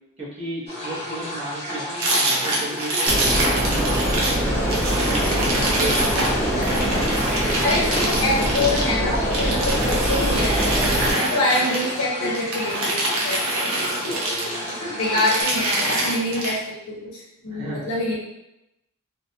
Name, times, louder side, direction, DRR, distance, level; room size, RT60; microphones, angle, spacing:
voice 1, 0.2-6.2 14.1-15.4 17.5-17.9, right 2 dB, 30° right, -9 dB, 0.9 m, -34 dB
sound 1, 0.7-15.4, left 1 dB, 30° left, 0.8 m, -32 dB
sound 2, 2.0-4.4 4.7-12.0 12.3-14.7 15.0-16.5, right 1 dB, 70° right, 0.6 m, -25 dB
sound 3, 3.1-11.1, equal, 5° left, 0.5 m, -23 dB
voice 2, 6.5-10.8 11.1-13.7 14.8-18.2, left 1 dB, 80° left, -5 dB, 0.6 m, -26 dB
2.5 x 2.2 x 2.6 m, 0.89 s
head